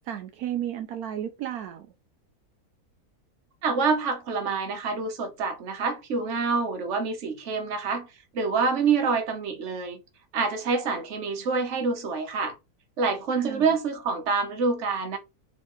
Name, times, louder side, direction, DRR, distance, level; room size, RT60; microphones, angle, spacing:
voice 1, 0.0-1.9 13.3-13.7, right 11 dB, 75° right, 1.0 m, -33 dB
voice 2, 3.6-8.1 8.3-10.0 10.3-12.5 13.0-15.2, right 4 dB, 55° right, 1.2 m, -26 dB
4.2 x 3.6 x 3.0 m
omnidirectional pair, 1.6 m